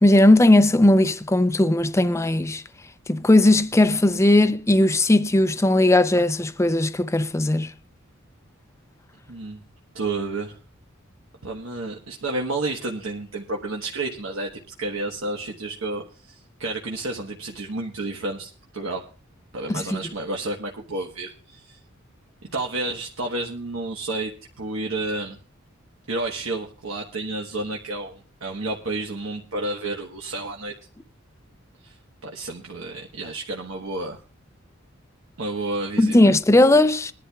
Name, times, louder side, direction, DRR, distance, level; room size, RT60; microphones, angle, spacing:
voice 1, 0.0-2.6 3.1-7.7 19.7-20.0 36.0-37.1, left 1 dB, 15° left, 0.5 m, -17 dB
voice 2, 9.3-9.6 9.9-10.6 11.4-14.5 14.8-19.1 19.5-21.8 22.5-25.4 26.1-30.7 31.8-32.0 32.2-34.2 35.4-36.2, right 2 dB, 80° right, 1.2 m, -30 dB
22.0 x 11.0 x 2.3 m
head